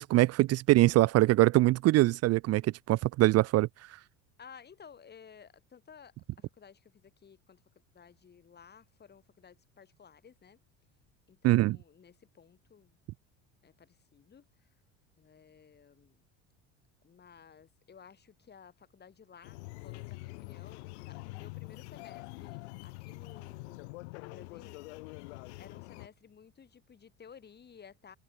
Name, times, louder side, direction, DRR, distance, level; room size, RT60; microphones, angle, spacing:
voice 1, 0.0-3.7 11.4-11.8, right 17 dB, 50° right, 0.6 m, -23 dB
voice 2, 4.4-7.6 7.9-10.6 11.3-13.0 13.6-14.7 15.2-16.2 17.0-24.8 25.6-28.2, left 7 dB, 30° left, 6.5 m, -56 dB
sound 1, 19.4-26.1, left 25 dB, 90° left, 2.6 m, -45 dB
supercardioid pair, 110°, 33 cm